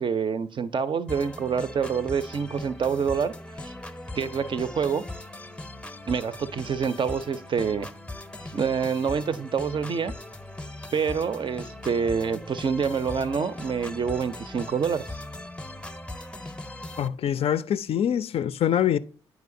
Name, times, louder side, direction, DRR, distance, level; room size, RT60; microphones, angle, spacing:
voice 1, 0.0-3.3 3.6-3.7 4.2-5.0 6.1-7.9 8.5-10.1 10.9-15.1, right 6 dB, 40° right, 0.5 m, -27 dB
sound 1, 1.1-17.1, left 1 dB, 10° left, 0.6 m, -39 dB
voice 2, 17.0-19.0, left 10 dB, 50° left, 0.4 m, -24 dB
9.2 x 4.9 x 2.6 m
hypercardioid pair, 40°, 13 cm